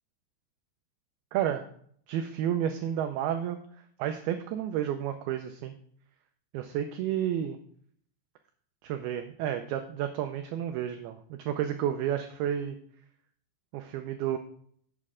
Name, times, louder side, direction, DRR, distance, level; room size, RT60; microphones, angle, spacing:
voice 1, 1.3-1.7 2.1-3.6 4.0-5.7 6.5-7.6 8.8-12.8 13.7-14.4, right 10 dB, 90° right, 7 dB, 2.2 m, -31 dB
8.4 x 7.7 x 3.6 m, 0.62 s
omnidirectional pair, 5.1 m